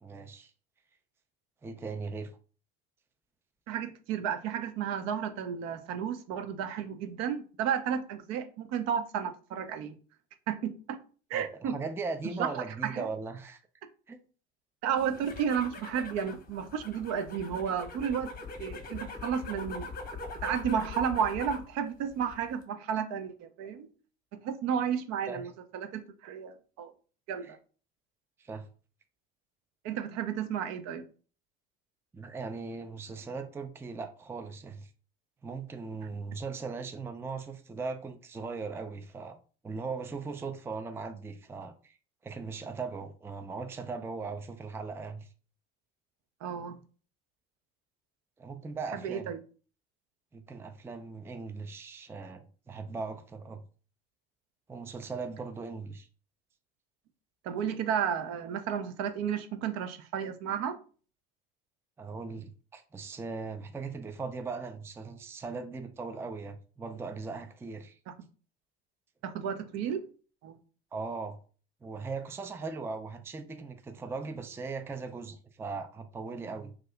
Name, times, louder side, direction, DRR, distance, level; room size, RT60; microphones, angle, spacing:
voice 1, 0.0-0.5 1.6-2.3 11.3-13.6 14.1-14.2 25.3-25.4 27.4-27.5 28.4-28.7 32.1-34.9 35.4-39.4 39.6-42.0 42.2-45.3 48.4-49.3 50.3-53.6 54.7-56.1 62.0-68.0 70.9-71.4 71.8-76.8, right 4 dB, 10° right, 0.4 m, -39 dB
voice 2, 3.7-9.9 10.5-11.0 11.3-11.7 12.4-13.1 14.8-18.3 18.6-19.9 20.4-23.9 24.4-26.9 27.3-27.6 29.8-31.0 46.4-46.8 48.9-49.4 57.4-60.8 69.2-70.0 70.4-70.6, right 8 dB, 60° right, 0.6 m, -32 dB
sound 1, 15.0-21.7 22.1-22.6, left 3 dB, 30° left, 0.9 m, -42 dB
2.6 x 2.4 x 3.3 m
hypercardioid pair, 65°, 30 cm